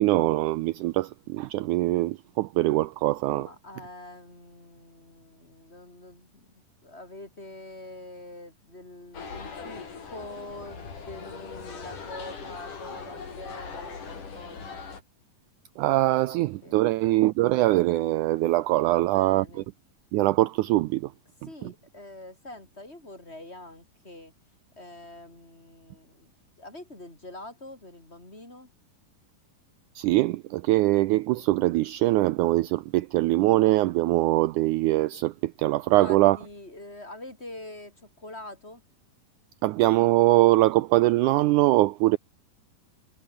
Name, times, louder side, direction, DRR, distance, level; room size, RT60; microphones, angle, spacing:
voice 1, 0.0-3.5 15.8-19.4 20.1-21.1 21.6-21.7 29.9-36.4 39.6-42.2, right 18 dB, 80° right, 1.8 m, -22 dB
voice 2, 3.4-6.5 6.8-14.8 16.6-16.8 18.7-19.7 21.4-24.3 24.8-26.3 26.6-28.7 35.9-38.8, left 1 dB, 15° left, 6.5 m, -44 dB
sound 1, 9.1-15.0, left 5 dB, 65° left, 6.1 m, -40 dB
omnidirectional pair, 4.0 m